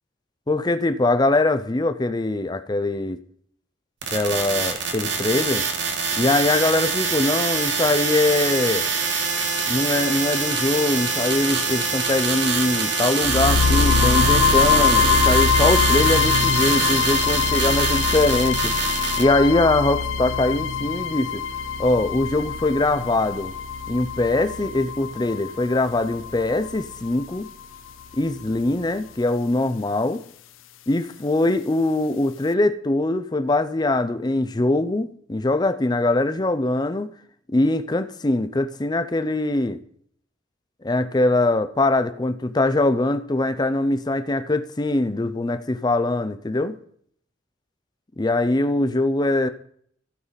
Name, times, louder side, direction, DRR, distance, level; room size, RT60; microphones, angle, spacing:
voice 1, 0.5-3.2 4.1-5.7 6.2-8.9 9.7-21.4 21.8-23.5 23.9-27.5 28.1-30.2 30.9-37.1 37.5-39.8 40.8-46.8 48.2-49.5, left 2 dB, 20° left, 12 dB, 0.5 m, -22 dB
sound 1, 4.0-19.2, right 5 dB, 60° right, 1.4 m, -24 dB
sound 2, 13.2-27.2, left 6 dB, 85° left, 0.6 m, -23 dB
15.5 x 5.6 x 4.0 m, 0.64 s
head